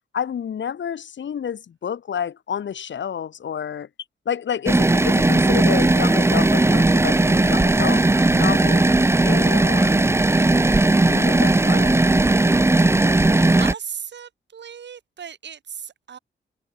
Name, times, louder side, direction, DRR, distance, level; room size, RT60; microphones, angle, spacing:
voice 1, 0.1-3.9 4.2-8.0 8.3-8.9 9.2-10.1 11.1-12.0, left 8 dB, 80° left, 6.6 m, -29 dB
sound 1, 4.7-13.7, right 2 dB, 15° right, 1.4 m, -17 dB
voice 2, 13.3-16.2, right 8 dB, 70° right, 5.8 m, -38 dB
wide cardioid pair, 165°, 19 cm